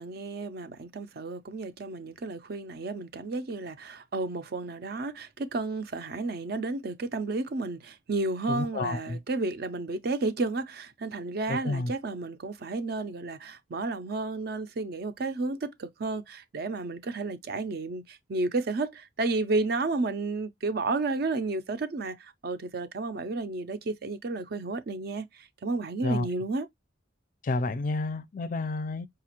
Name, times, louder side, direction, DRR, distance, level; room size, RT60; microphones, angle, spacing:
voice 1, 0.0-26.7, right 3 dB, 50° right, 0.5 m, -32 dB
voice 2, 8.5-9.2 11.5-11.9 26.0-26.3 27.4-29.1, left 2 dB, 45° left, 0.4 m, -30 dB
4.8 x 2.4 x 2.9 m
head